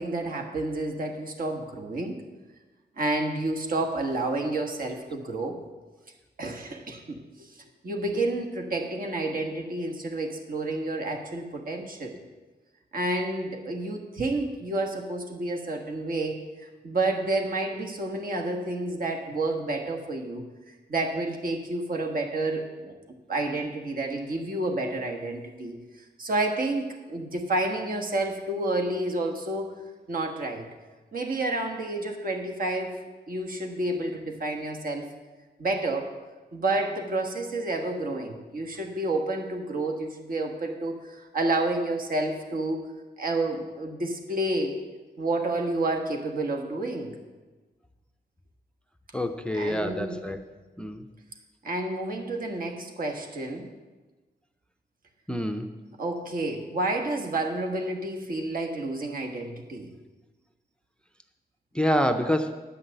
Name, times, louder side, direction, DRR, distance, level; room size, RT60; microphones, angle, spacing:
voice 1, 0.0-2.1 3.0-5.6 6.4-7.5 7.8-12.2 12.9-16.4 16.8-22.9 23.3-25.7 26.2-29.7 30.1-30.7 31.1-33.0 33.3-35.1 35.6-36.1 36.5-42.9 43.2-44.8 45.2-47.1 49.5-50.2 51.6-53.6 56.0-59.9, right 2 dB, 55° right, 2 dB, 1.4 m, -30 dB
voice 2, 49.1-50.4 50.8-51.0 55.3-55.7 61.7-62.5, equal, 5° left, 7 dB, 0.5 m, -26 dB
10.0 x 5.8 x 7.9 m, 1.3 s
wide cardioid pair, 125°, 17 cm